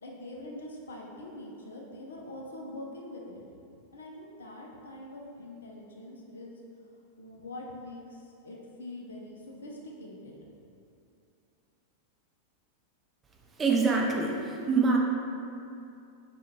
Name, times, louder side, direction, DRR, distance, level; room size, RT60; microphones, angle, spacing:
voice 1, 0.0-3.4 3.9-6.6 7.2-10.5, left 1 dB, 70° left, -1 dB, 0.4 m, -44 dB
voice 2, 13.6-15.0, right 4 dB, 20° right, -1 dB, 0.3 m, -25 dB
3.5 x 2.2 x 2.8 m, 2.6 s
figure-of-eight pair, 90°, 0 cm